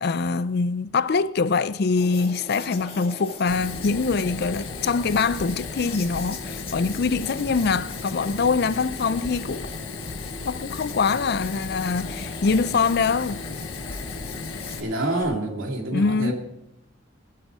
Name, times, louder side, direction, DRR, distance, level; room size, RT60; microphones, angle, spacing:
voice 1, 0.0-9.7 10.4-13.4 15.9-16.3, left 4 dB, 50° left, 0.5 m, -24 dB
sound 1, 2.0-15.2, left 3 dB, 30° left, 1.9 m, -40 dB
Fire, 3.5-14.8, left 4 dB, 85° left, 1.1 m, -35 dB
voice 2, 14.8-16.3, right 1 dB, 85° right, 2.7 m, -27 dB
19.0 x 8.2 x 4.8 m
head